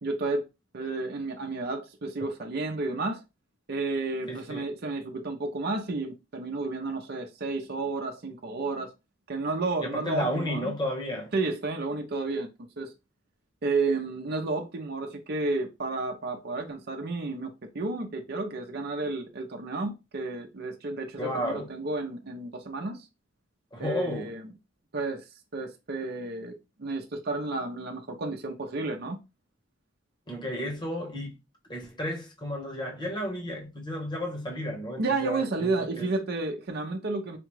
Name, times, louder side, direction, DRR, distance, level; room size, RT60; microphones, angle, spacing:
voice 1, 0.0-0.4 0.7-3.2 3.7-8.9 9.3-10.7 11.3-12.5 12.8-12.9 13.6-23.1 23.8-24.4 24.9-25.2 25.5-26.5 26.8-29.2 35.0-37.4, right 3 dB, 55° right, 0.7 m, -31 dB
voice 2, 4.3-4.7 9.8-11.3 21.2-21.7 23.7-24.3 30.3-31.4 31.7-36.1, equal, 25° left, 1.2 m, -33 dB
5.0 x 2.3 x 3.1 m
head